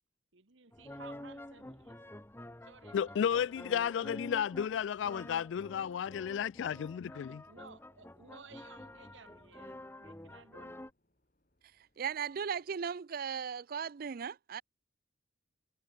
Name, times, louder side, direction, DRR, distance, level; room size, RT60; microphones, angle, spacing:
voice 1, 0.3-2.0 2.6-3.0 3.3-4.1 7.5-10.8 11.8-11.9, right 4 dB, 70° right, 1.4 m, -56 dB
sound 1, 0.7-10.9, left 1 dB, 10° left, 1.1 m, -49 dB
sound 2, 1.6-13.0, left 1 dB, 45° left, 7.0 m, -82 dB
voice 2, 2.9-7.4, left 8 dB, 65° left, 0.3 m, -33 dB
voice 3, 12.0-14.6, right 7 dB, 50° right, 0.4 m, -37 dB
head